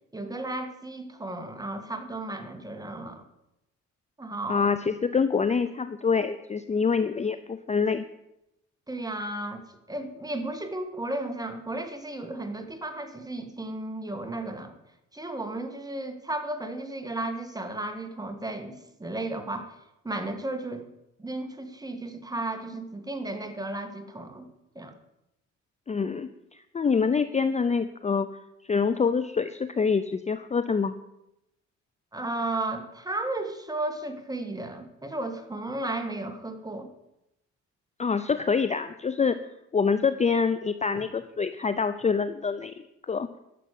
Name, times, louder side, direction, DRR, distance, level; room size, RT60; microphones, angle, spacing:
voice 1, 0.1-3.2 4.2-4.7 8.9-14.7 15.1-19.7 20.0-20.9 21.2-24.5 24.8-24.9 32.1-36.9, right 2 dB, 10° right, 6 dB, 1.9 m, -34 dB
voice 2, 4.5-8.0 25.9-28.3 28.7-30.9 38.0-39.4 39.7-43.3, left 5 dB, 25° left, 11 dB, 0.6 m, -26 dB
11.5 x 6.8 x 8.4 m, 0.87 s
cardioid pair, 90°, 30 cm